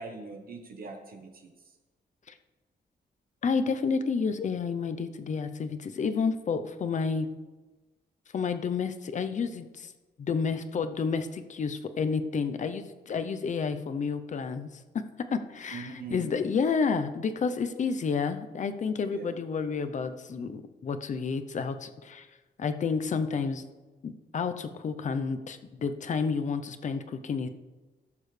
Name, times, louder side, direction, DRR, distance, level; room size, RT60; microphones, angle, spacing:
voice 1, 0.0-1.7 15.7-16.3 19.1-19.3, right 4 dB, 60° right, 3 dB, 1.2 m, -42 dB
voice 2, 3.4-7.3 8.3-9.9 10.2-14.7 14.9-15.0 15.3-22.3 22.6-23.6 24.0-27.5, left 5 dB, 45° left, 9 dB, 0.7 m, -30 dB
16.5 x 7.0 x 3.3 m, 1.2 s
wide cardioid pair, 150°, 17 cm